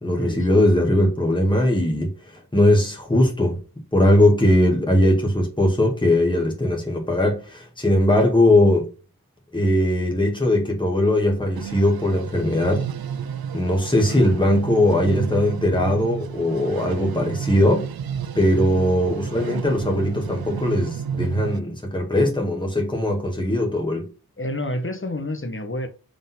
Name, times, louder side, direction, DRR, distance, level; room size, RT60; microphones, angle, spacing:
voice 1, 0.0-3.6 3.9-8.9 9.5-12.8 13.5-17.9 18.4-24.1, left 1 dB, 15° left, 1.8 m, -20 dB
sound 1, 11.5-21.6, right 8 dB, 75° right, 0.5 m, -32 dB
voice 2, 24.4-25.9, left 1 dB, 35° left, 1.3 m, -29 dB
5.2 x 3.8 x 5.6 m
wide cardioid pair, 50°, 37 cm